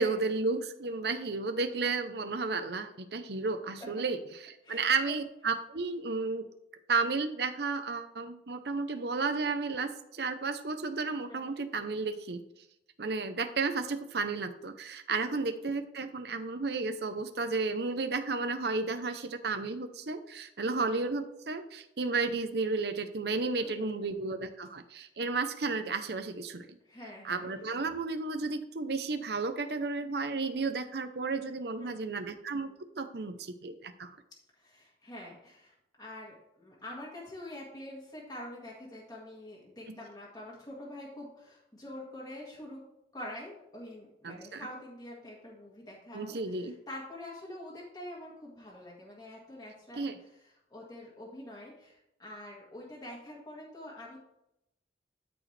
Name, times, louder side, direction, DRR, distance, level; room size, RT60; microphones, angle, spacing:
voice 1, 0.0-4.2 4.7-6.5 6.9-12.4 13.0-26.8 27.2-34.1 39.9-40.0 44.2-44.7 46.1-46.7 50.0-50.2, right 4 dB, 60° right, 8 dB, 0.7 m, -33 dB
voice 2, 4.6-5.2 11.3-11.6 15.2-15.5 20.6-20.9 23.6-24.1 26.8-27.5 31.8-32.3 34.6-42.8 43.1-54.2, left 1 dB, 20° left, -5 dB, 1.9 m, -46 dB
13.0 x 4.9 x 3.3 m, 0.82 s
head